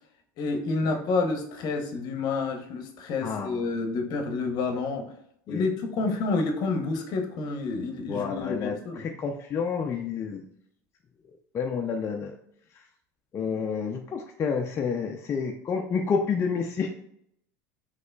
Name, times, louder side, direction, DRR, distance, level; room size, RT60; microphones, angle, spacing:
voice 1, 0.4-5.1 5.5-9.1, left 3 dB, 55° left, 5 dB, 0.8 m, -29 dB
voice 2, 3.2-3.6 5.5-5.7 8.1-10.4 11.5-12.4 13.3-16.9, left 5 dB, 30° left, 2 dB, 0.4 m, -29 dB
4.2 x 2.9 x 2.2 m, 0.71 s
supercardioid pair, 100°, 8 cm